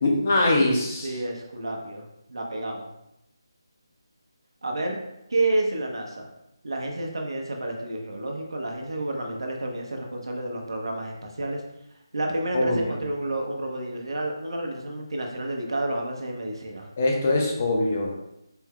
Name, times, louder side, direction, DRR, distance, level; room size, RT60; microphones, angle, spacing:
voice 1, 0.0-1.1 12.5-12.9 17.0-18.1, left 2 dB, 20° left, -1 dB, 0.4 m, -22 dB
voice 2, 1.0-2.9 4.6-5.0 5.3-6.3 6.6-11.6 12.1-16.9, right 2 dB, 70° right, 1 dB, 0.9 m, -30 dB
4.4 x 2.2 x 3.6 m, 0.85 s
figure-of-eight pair, 180°, 3 cm